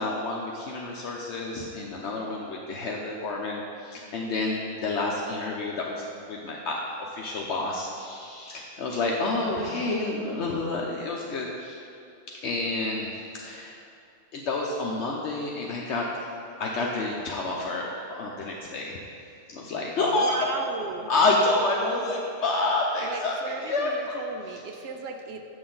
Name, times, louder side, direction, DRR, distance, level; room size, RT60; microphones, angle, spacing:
voice 1, 0.0-6.8 7.1-11.8 12.4-13.7 14.3-16.1 16.6-18.9 19.5-20.4 21.1-24.1 24.5-24.6, left 2 dB, 70° left, -2 dB, 1.0 m, -29 dB
voice 2, 9.3-9.9 20.0-21.1 23.0-25.5, right 4 dB, 65° right, 4 dB, 0.8 m, -36 dB
7.8 x 6.4 x 3.8 m, 2.4 s
omnidirectional pair, 1.2 m